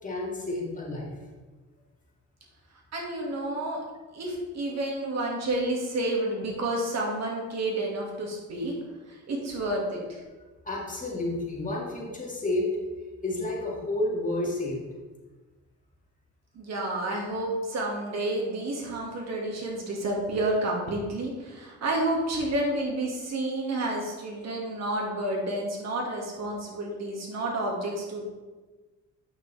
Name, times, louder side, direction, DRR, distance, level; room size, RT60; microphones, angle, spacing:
voice 1, 0.0-1.2 10.6-12.7 13.2-14.8, left 2 dB, 25° left, -3 dB, 2.2 m, -30 dB
voice 2, 2.9-3.8 4.1-8.7 9.1-10.2 16.5-28.3, right 1 dB, 60° right, -1 dB, 2.2 m, -30 dB
8.5 x 6.2 x 3.5 m, 1.3 s
cardioid pair, 90°, 30 cm